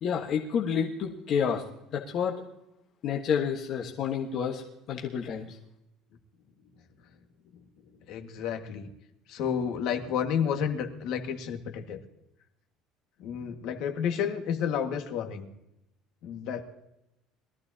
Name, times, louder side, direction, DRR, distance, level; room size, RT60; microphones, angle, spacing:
voice 1, 0.0-1.6 1.9-2.3 3.0-4.6 4.9-5.6, left 7 dB, 40° left, 0 dB, 1.3 m, -29 dB
voice 2, 8.1-8.9 9.3-12.0 13.2-15.5 16.2-16.6, left 8 dB, 55° left, 5 dB, 1.7 m, -31 dB
22.0 x 14.5 x 2.8 m, 0.87 s
cardioid pair, 175°, 0 cm